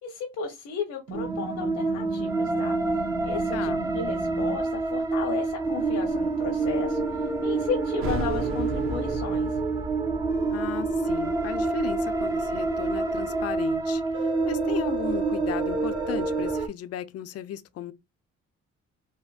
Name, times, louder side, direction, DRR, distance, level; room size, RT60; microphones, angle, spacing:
voice 1, 0.0-2.8 3.2-9.6, left 6 dB, 80° left, 0.9 m, -34 dB
sound 1, 1.1-16.7, right 3 dB, 10° right, 0.4 m, -28 dB
sound 2, 1.1-4.6 5.6-9.1 10.3-13.4 14.1-16.5, right 3 dB, 65° right, 1.5 m, -36 dB
voice 2, 3.5-3.8 10.5-17.9, left 11 dB, 55° left, 0.5 m, -36 dB
sound 3, 8.0-13.3, equal, 45° right, 0.8 m, -36 dB
3.4 x 2.1 x 2.4 m
cardioid pair, 90°, 30 cm